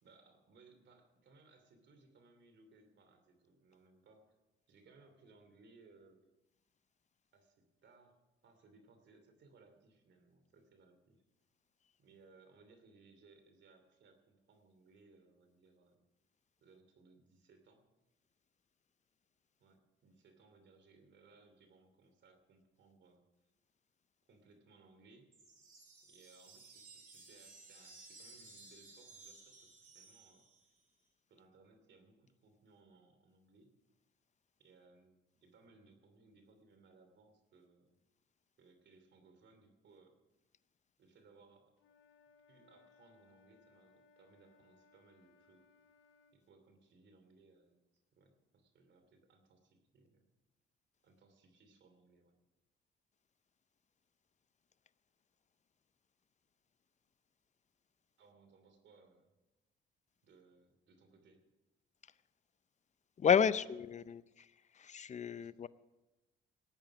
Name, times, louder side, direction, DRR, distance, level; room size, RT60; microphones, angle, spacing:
voice 1, 0.0-4.4 4.7-6.2 7.3-11.2 12.0-16.0 16.6-17.8 19.6-23.2 24.3-25.3 26.0-30.5 31.3-33.7 34.6-38.0 38.6-40.2 41.0-41.7 42.5-45.6 46.3-47.8 48.1-50.2 51.0-52.3 58.2-59.3 60.2-61.4 63.5-63.8 64.1-64.2 65.4-65.7, right 3 dB, 65° right, 7 dB, 2.9 m, -65 dB
sound 1, 25.3-30.8, right 3 dB, 50° right, 5.0 m, -57 dB
Wind instrument woodwind instrument, 41.8-46.4, left 4 dB, 80° left, 1.2 m, -68 dB
voice 2, 63.2-64.2 64.7-65.7, left 7 dB, 35° left, 17 dB, 0.5 m, -31 dB
18.5 x 9.0 x 6.1 m, 1.1 s
cardioid pair, 90°, 20 cm